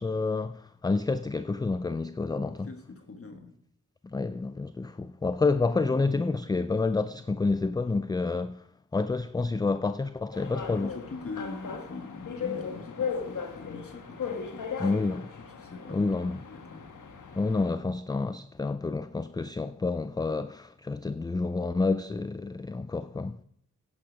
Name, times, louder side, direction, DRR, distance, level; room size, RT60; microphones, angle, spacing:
voice 1, 0.0-2.7 4.0-8.6 8.9-10.9 14.8-15.3 15.9-16.4 17.3-23.4, left 3 dB, 15° left, 0.3 m, -29 dB
voice 2, 2.6-3.5 10.8-14.9 15.6-16.8, left 3 dB, 45° left, 1.4 m, -43 dB
sound 1, 10.3-17.7, left 6 dB, 70° left, 1.4 m, -37 dB
10.0 x 8.9 x 5.1 m
cardioid pair, 55°, 32 cm